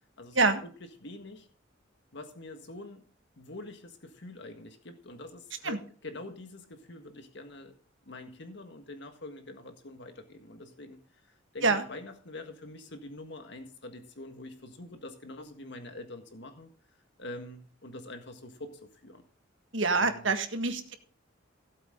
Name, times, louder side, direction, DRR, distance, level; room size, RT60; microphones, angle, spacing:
voice 1, 0.2-0.7 1.0-1.5 2.1-3.0 3.4-7.7 8.0-16.7 17.2-19.2 20.0-20.3, left 2 dB, 60° left, 6 dB, 1.7 m, -45 dB
voice 2, 19.7-20.9, right 3 dB, 70° right, 7 dB, 1.7 m, -26 dB
16.5 x 8.1 x 3.8 m, 0.42 s
head